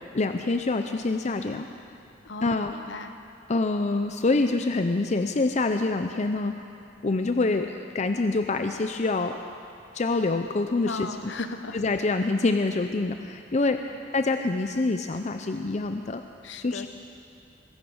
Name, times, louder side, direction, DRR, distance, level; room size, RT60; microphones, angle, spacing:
voice 1, 0.1-1.7 2.4-2.7 3.5-6.6 7.0-9.4 9.9-11.1 11.7-13.8 14.1-16.2 16.6-16.9, left 3 dB, 40° left, 6 dB, 0.5 m, -26 dB
voice 2, 2.2-3.1 10.8-11.8 16.4-16.9, left 3 dB, 70° left, 9 dB, 0.9 m, -36 dB
22.0 x 10.5 x 6.3 m, 2.7 s
head